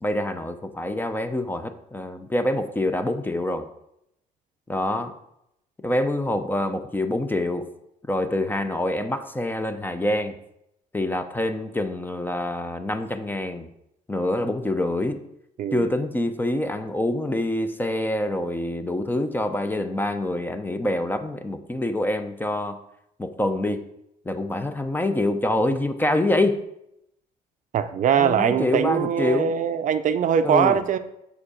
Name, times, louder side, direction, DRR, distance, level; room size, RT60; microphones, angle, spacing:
voice 1, 0.0-3.7 4.7-5.1 5.8-7.7 8.1-10.3 10.9-13.7 14.1-15.2 15.7-22.8 23.2-23.9 24.3-26.6 28.2-29.5 30.4-30.8, left 1 dB, 10° left, 0.5 m, -26 dB
voice 2, 15.6-15.9 27.7-31.0, right 8 dB, 50° right, 0.5 m, -22 dB
6.6 x 4.9 x 4.9 m
cardioid pair, 110°, 17 cm